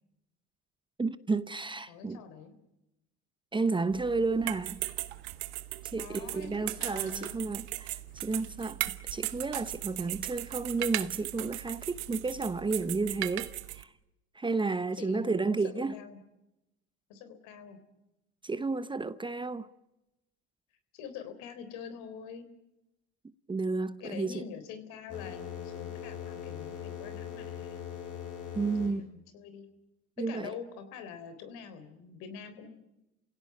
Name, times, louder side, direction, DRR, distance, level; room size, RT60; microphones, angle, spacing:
voice 1, 1.0-2.2 3.5-4.8 5.8-8.8 9.1-13.9 14.3-16.0 18.4-19.7 23.5-24.4 28.5-29.0 30.2-30.5, right 3 dB, 15° right, 0.8 m, -32 dB
voice 2, 1.9-2.5 6.0-7.3 15.0-16.2 17.1-17.8 20.9-22.5 24.0-27.8 28.8-29.7 30.2-32.7, left 6 dB, 70° left, 3.7 m, -45 dB
sound 1, 3.9-13.8, right 17 dB, 85° right, 1.1 m, -38 dB
sound 2, 25.1-28.9, left 8 dB, 50° left, 6.6 m, -40 dB
29.0 x 17.0 x 9.4 m
supercardioid pair, 90°, 32 cm